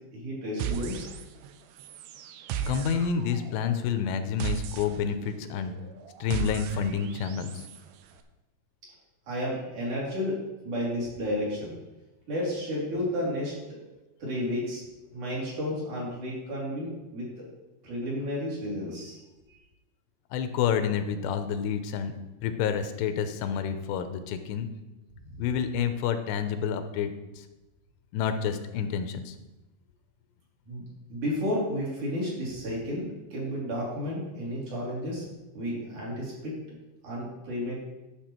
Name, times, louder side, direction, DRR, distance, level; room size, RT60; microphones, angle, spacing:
voice 1, 0.1-1.1 9.3-10.4 10.6-11.8 12.3-13.5 14.2-14.8 15.1-17.5 17.8-19.2 30.7-30.8 31.1-35.3 35.5-36.6 37.0-37.8, equal, 45° right, -6 dB, 4.4 m, -32 dB
sound 1, 0.6-1.5 1.8-7.8, right 8 dB, 85° right, 2.8 m, -36 dB
voice 2, 2.7-5.7 6.2-7.7 20.3-22.1 22.4-24.7 25.4-27.1 27.4-27.5 28.1-29.4, left 7 dB, 85° left, 9 dB, 2.9 m, -29 dB
12.0 x 6.8 x 4.4 m, 1.1 s
omnidirectional pair, 4.9 m